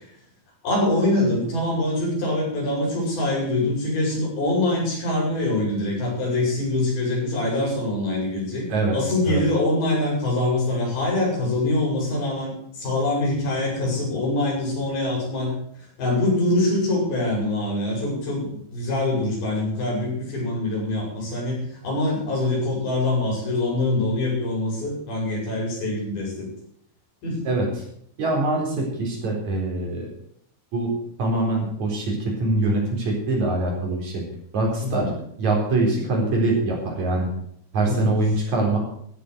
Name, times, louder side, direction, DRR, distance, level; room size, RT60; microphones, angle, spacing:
voice 1, 0.6-8.7 8.9-15.5 16.0-26.5 27.2-27.4 34.8-35.1 37.9-38.1, left 2 dB, 75° left, -2 dB, 7.7 m, -24 dB
voice 2, 28.2-30.1 30.7-30.9 31.2-34.2 34.5-35.1 35.4-37.3 37.7-38.8, right 2 dB, 50° right, -1 dB, 5.2 m, -23 dB
13.5 x 8.4 x 8.0 m, 0.67 s
omnidirectional pair, 4.3 m